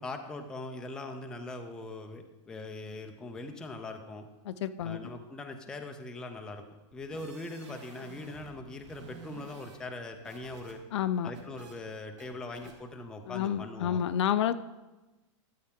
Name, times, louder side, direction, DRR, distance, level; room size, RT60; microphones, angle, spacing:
voice 1, 0.0-4.3 4.8-6.6 6.9-10.8 11.2-14.0, left 2 dB, 5° left, 4 dB, 0.4 m, -41 dB
voice 2, 4.4-5.1 10.9-11.3 13.3-14.5, left 9 dB, 65° left, 12 dB, 0.6 m, -29 dB
sound 1, 6.9-8.5 8.8-10.7 11.0-11.7 12.2-12.3 12.5-12.7, right 4 dB, 70° right, 2.3 m, -50 dB
13.0 x 8.2 x 3.6 m, 1.1 s
supercardioid pair, 170°, 16 cm